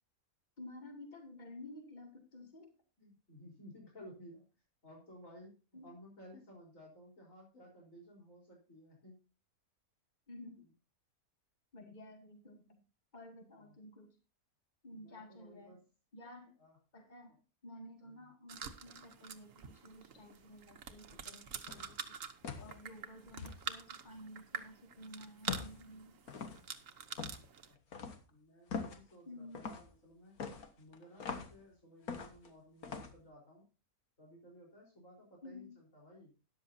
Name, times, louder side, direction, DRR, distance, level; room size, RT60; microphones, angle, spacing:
voice 1, 0.6-2.7 5.7-5.9 10.3-10.6 11.7-12.8 13.1-14.2 14.8-15.8 16.1-16.6 16.9-22.2 22.6-26.2 29.3-29.7 35.4-35.8, left 1 dB, 30° left, 4 dB, 2.5 m, -52 dB
voice 2, 3.0-4.5 4.8-5.6 5.8-9.2 13.6-13.8 14.9-15.8 16.6-16.8 18.0-18.2 27.6-30.3 30.8-33.6 34.2-36.3, equal, 60° left, -3 dB, 4.4 m, -56 dB
sound 1, 18.5-27.7, right 7 dB, 60° right, 1.4 m, -47 dB
sound 2, 21.7-22.0 22.4-22.8 23.4-23.6 25.5-25.8 26.3-26.6 27.1-27.4 27.9-28.2 28.7-29.0 29.5-29.9 30.4-31.6 32.1-32.5 32.8-33.1, left 5 dB, 75° left, 1.9 m, -42 dB
13.5 x 11.5 x 2.7 m, 0.32 s
omnidirectional pair, 1.6 m